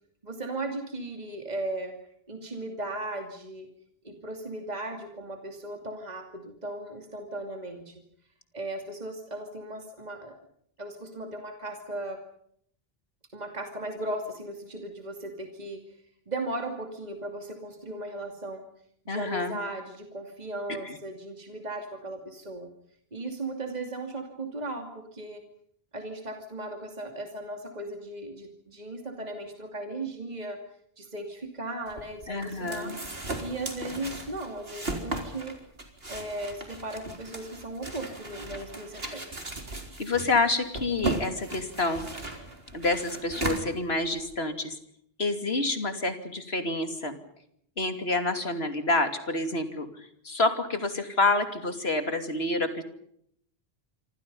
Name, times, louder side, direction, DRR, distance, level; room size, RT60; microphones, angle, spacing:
voice 1, 0.2-2.0 2.3-3.7 4.0-8.0 8.5-10.4 10.8-12.2 13.3-18.6 19.0-22.7 23.1-25.4 25.9-30.6 31.0-32.9 33.4-35.6 36.1-39.2, right 2 dB, 40° right, 4 dB, 2.7 m, -37 dB
voice 2, 19.1-19.6 20.8-21.0 32.3-33.0 40.0-42.0 42.7-44.8 45.2-47.2 47.8-52.8, left 2 dB, 80° left, 7 dB, 3.0 m, -28 dB
sound 1, 31.9-44.4, right 2 dB, 75° right, 4.2 m, -37 dB
27.0 x 26.0 x 5.5 m, 0.69 s
omnidirectional pair, 1.0 m